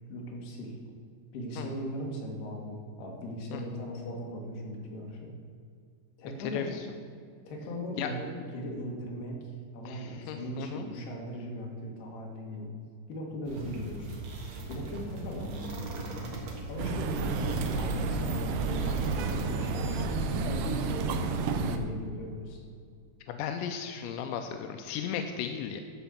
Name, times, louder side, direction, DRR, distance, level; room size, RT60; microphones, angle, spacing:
voice 1, 0.1-0.8 1.3-5.3 6.2-6.7 7.5-9.4 9.7-12.7 13.1-14.1 14.7-16.1 16.7-22.6, equal, 70° left, -1 dB, 3.8 m, -38 dB
voice 2, 6.5-6.8 8.0-8.1 9.9-10.9 23.3-25.8, left 8 dB, 90° left, 6 dB, 2.9 m, -35 dB
sound 1, 13.4-20.0, right 2 dB, 60° right, 1.8 m, -40 dB
sound 2, 16.8-21.8, right 4 dB, 85° right, 3.0 m, -31 dB
13.0 x 5.2 x 7.1 m, 2.2 s
omnidirectional pair, 5.0 m